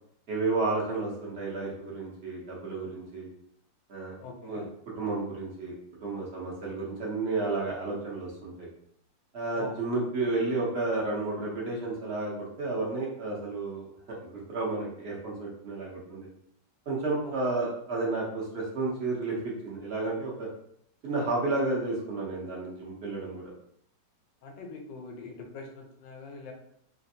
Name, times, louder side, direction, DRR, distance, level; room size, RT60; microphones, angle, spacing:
voice 1, 0.3-3.3 3.9-4.2 4.4-4.6 5.0-5.7 6.0-8.7 9.3-16.3 16.9-20.5 21.0-23.5, right 3 dB, 50° right, -4 dB, 0.8 m, -32 dB
voice 2, 4.2-4.7 9.5-9.8 17.2-17.3 24.4-26.5, left 4 dB, 90° left, 2 dB, 1.4 m, -43 dB
3.3 x 2.4 x 2.6 m, 0.70 s
omnidirectional pair, 1.9 m